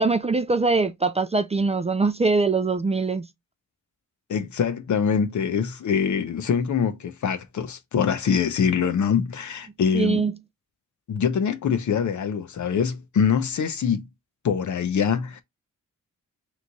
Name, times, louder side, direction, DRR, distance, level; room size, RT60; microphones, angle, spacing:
voice 1, 0.0-3.2 9.9-10.3, right 3 dB, 20° right, 0.4 m, -22 dB
voice 2, 4.3-10.2 11.1-14.1 14.4-15.4, left 7 dB, 65° left, 0.7 m, -24 dB
3.4 x 3.1 x 3.9 m
wide cardioid pair, 105°, 32 cm